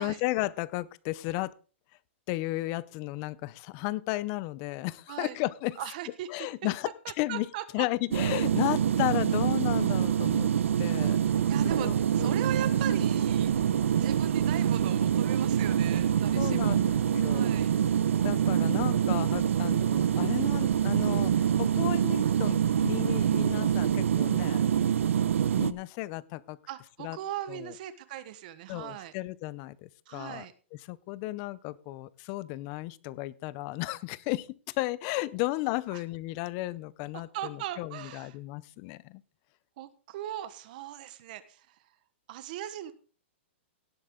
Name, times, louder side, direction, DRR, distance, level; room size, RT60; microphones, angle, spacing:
voice 1, 0.0-1.5 2.3-5.8 6.3-6.9 7.2-7.5 7.7-10.5 10.8-11.2 11.6-12.4 16.3-17.6 18.2-24.6 25.6-26.6 27.0-27.2 27.5-27.7 28.7-30.5 30.9-39.2, left 19 dB, 30° left, 19 dB, 0.5 m, -34 dB
voice 2, 5.8-6.5 7.0-7.9 11.4-13.5 13.9-16.8 17.2-17.7 26.7-29.1 30.1-30.5 35.9-36.0 37.1-38.4 39.8-41.8 42.3-42.9, right 12 dB, 40° right, 12 dB, 1.2 m, -39 dB
sound 1, 8.1-25.7, right 9 dB, 90° right, 0.8 m, -25 dB
17.5 x 7.9 x 3.7 m, 0.37 s
hypercardioid pair, 165°, 7 cm